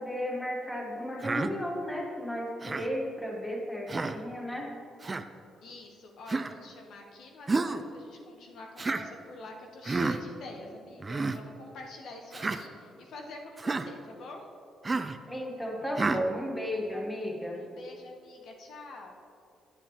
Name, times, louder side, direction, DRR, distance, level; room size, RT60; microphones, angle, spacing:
voice 1, 0.0-4.7 15.3-17.6, equal, 10° left, 0 dB, 1.5 m, -34 dB
Human voice, 1.2-1.5 2.6-2.9 3.9-4.2 5.0-5.2 6.3-6.5 7.5-7.8 8.8-9.1 9.9-10.2 11.0-11.4 12.3-12.6 13.6-13.9 14.8-15.2 16.0-16.2, right 3 dB, 25° right, 0.4 m, -30 dB
voice 2, 5.6-14.5 17.5-19.2, left 2 dB, 70° left, 2 dB, 0.9 m, -46 dB
9.8 x 9.1 x 2.9 m, 2.5 s
cardioid pair, 90°, 0 cm